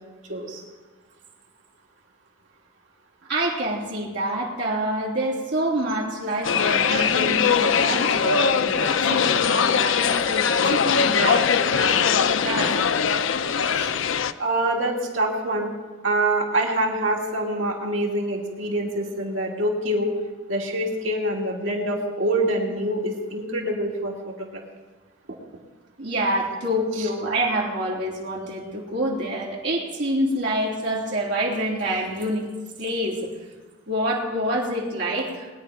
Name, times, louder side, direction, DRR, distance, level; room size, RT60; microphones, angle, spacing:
voice 1, 0.3-0.6 6.9-7.1 13.8-13.9 14.4-15.7 16.0-20.2 20.5-24.6, right 1 dB, 80° right, -1 dB, 2.7 m, -25 dB
voice 2, 3.3-12.8 26.0-32.5 32.8-33.3 33.9-35.5, right 1 dB, 60° right, -4 dB, 3.5 m, -27 dB
sound 1, 6.4-14.3, left 6 dB, 70° left, 0.6 m, -21 dB
21.0 x 10.0 x 5.0 m, 1.3 s
head